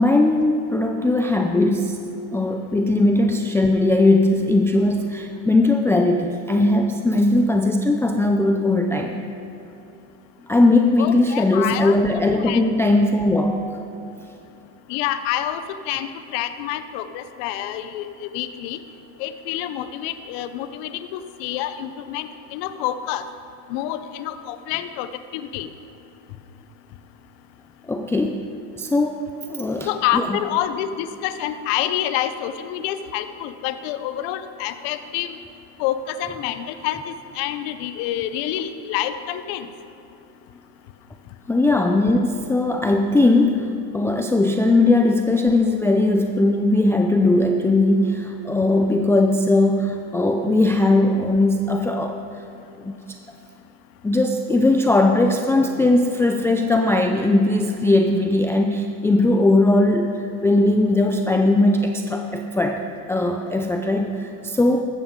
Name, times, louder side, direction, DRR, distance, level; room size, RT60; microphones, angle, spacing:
voice 1, 0.0-2.0 2.3-9.3 10.5-14.3 27.9-28.5 28.8-29.2 29.5-30.3 41.5-52.2 52.8-53.0 54.0-64.8, left 2 dB, 5° left, 3 dB, 0.4 m, -19 dB
voice 2, 11.0-12.0 12.3-12.6 14.9-18.8 19.2-23.2 23.7-25.7 29.9-35.4 35.8-39.7, left 11 dB, 60° left, 11 dB, 0.9 m, -27 dB
15.0 x 12.5 x 3.8 m, 2.9 s
supercardioid pair, 100°, 47 cm